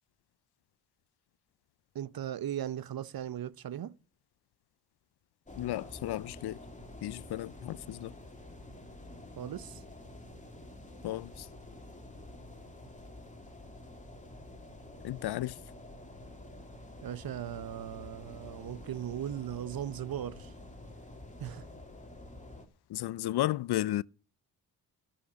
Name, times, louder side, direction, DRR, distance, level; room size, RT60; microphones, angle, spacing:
voice 1, 1.9-4.0 9.4-9.8 17.0-20.5 21.4-21.7, right 10 dB, 50° right, 0.8 m, -38 dB
sound 1, 5.5-22.7, left 1 dB, 15° left, 2.6 m, -49 dB
voice 2, 5.6-6.6 7.0-8.1 11.0-11.5 15.0-15.6 22.9-24.0, left 14 dB, 60° left, 0.5 m, -33 dB
13.0 x 5.8 x 8.5 m
supercardioid pair, 45°, 44 cm